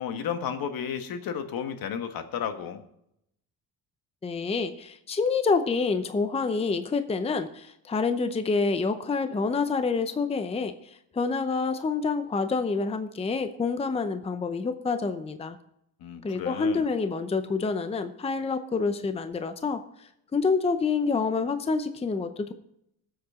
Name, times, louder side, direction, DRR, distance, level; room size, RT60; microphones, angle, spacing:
voice 1, 0.0-2.8 16.0-16.9, left 8 dB, 65° left, 8 dB, 1.5 m, -33 dB
voice 2, 4.2-15.6 16.2-22.5, left 4 dB, 15° left, 10 dB, 0.7 m, -27 dB
19.0 x 7.9 x 3.7 m, 0.76 s
cardioid pair, 130°, 38 cm